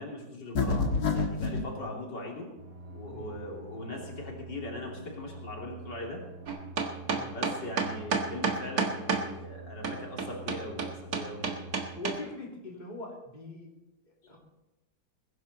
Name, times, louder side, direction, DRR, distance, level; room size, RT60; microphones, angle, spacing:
voice 1, 0.0-2.5 2.9-6.2 7.3-11.7, left 1 dB, 85° left, -1 dB, 3.7 m, -40 dB
sound 1, 0.5-1.7, left 4 dB, 65° left, 2.1 m, -27 dB
sound 2, 2.6-12.0, right 2 dB, 35° right, 1.7 m, -46 dB
sound 3, 6.5-9.2 9.8-12.2, right 5 dB, 60° right, 2.1 m, -29 dB
voice 2, 11.9-13.7 14.1-14.4, left 1 dB, 25° left, -2 dB, 3.1 m, -42 dB
21.0 x 11.0 x 4.2 m, 0.96 s
omnidirectional pair, 1.8 m